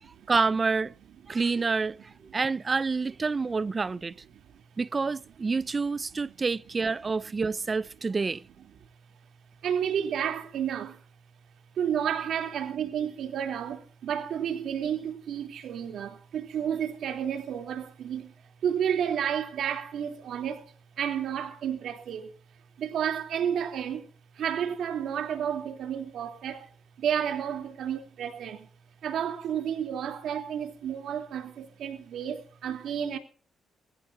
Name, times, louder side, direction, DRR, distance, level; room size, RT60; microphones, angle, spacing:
voice 1, 0.3-0.9 1.3-2.0 2.3-4.1 4.8-8.4, right 4 dB, 30° right, 0.6 m, -28 dB
voice 2, 9.6-11.0 11.7-18.3 18.6-22.3 22.8-24.1 24.3-26.7 27.0-28.7 29.0-33.2, right 8 dB, 70° right, 3.3 m, -31 dB
23.0 x 15.0 x 2.8 m
cardioid pair, 90°, 0 cm